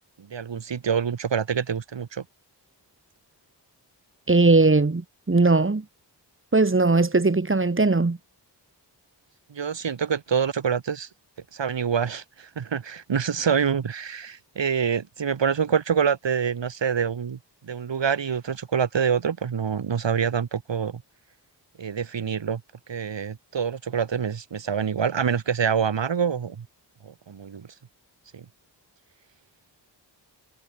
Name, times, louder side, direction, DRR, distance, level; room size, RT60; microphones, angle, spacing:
voice 1, 0.2-2.2 9.5-11.1 11.5-17.4 17.6-21.0 21.8-22.6 22.9-26.7 27.0-27.7 28.3-28.4, right 7 dB, 90° right, 3.4 m, -26 dB
voice 2, 4.3-5.8 6.5-8.2, right 3 dB, 30° right, 2.7 m, -19 dB
wide cardioid pair, 105°, 43 cm